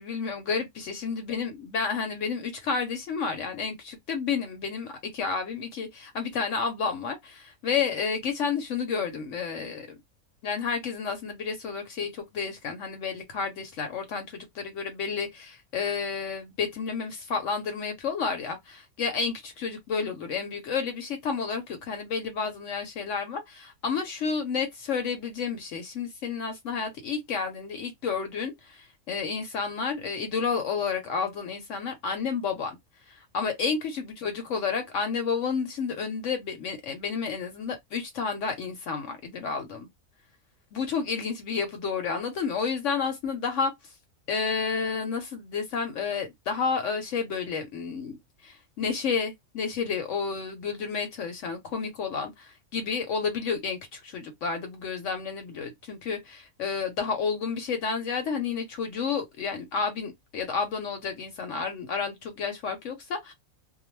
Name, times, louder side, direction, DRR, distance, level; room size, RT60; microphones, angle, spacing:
voice 1, 0.0-10.0 10.4-32.8 33.1-39.9 40.7-43.7 44.3-63.3, left 5 dB, 65° left, 0.9 m, -31 dB
2.3 x 2.1 x 3.1 m
omnidirectional pair, 1.5 m